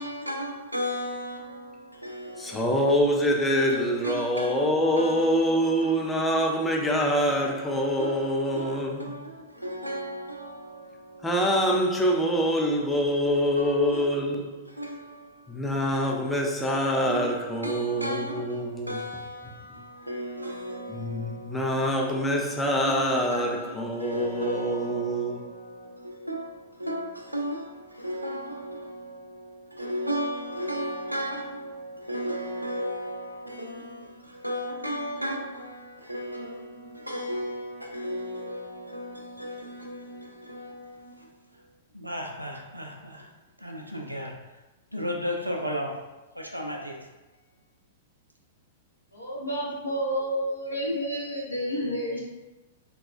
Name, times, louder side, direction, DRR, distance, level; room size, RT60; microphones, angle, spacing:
voice 1, 0.0-3.0 3.7-6.4 8.0-11.4 13.0-14.1 14.7-15.9 16.6-41.3 41.9-43.3 43.6-44.4 44.9-47.1, equal, 85° right, 0.4 m, -35 dB
voice 2, 2.4-9.2 11.2-14.7 15.5-19.0 20.9-25.4, equal, 5° left, 0.5 m, -25 dB
voice 3, 49.1-52.2, equal, 80° left, 0.8 m, -30 dB
3.5 x 2.2 x 2.4 m
figure-of-eight pair, 100°, 0 cm